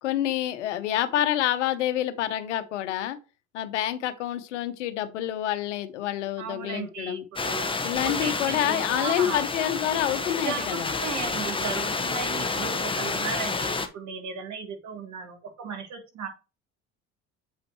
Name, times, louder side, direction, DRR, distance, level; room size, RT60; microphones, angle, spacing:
voice 1, 0.0-3.2 3.5-7.3 7.8-10.9, left 12 dB, 90° left, 0.9 m, -27 dB
voice 2, 6.4-7.7 8.0-9.5 10.5-16.3, right 5 dB, 55° right, 2.7 m, -35 dB
sound 1, 7.4-13.9, left 4 dB, 15° left, 1.1 m, -29 dB
8.1 x 5.1 x 3.0 m
hypercardioid pair, 70°, 35 cm